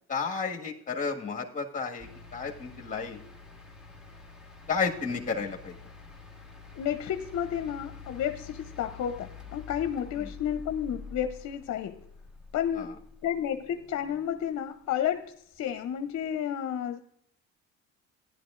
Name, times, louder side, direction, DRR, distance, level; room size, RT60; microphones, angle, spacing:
voice 1, 0.1-3.2 4.7-5.7 12.8-12.9, left 5 dB, 25° left, 1 dB, 1.7 m, -32 dB
sound 1, 2.0-14.3 15.6-15.7, left 4 dB, ahead, 1.9 m, -47 dB
voice 2, 6.8-12.0 12.5-12.9 13.2-17.0, left 9 dB, 60° left, 8 dB, 0.7 m, -31 dB
14.0 x 11.0 x 2.5 m, 0.70 s
supercardioid pair, 75°, 31 cm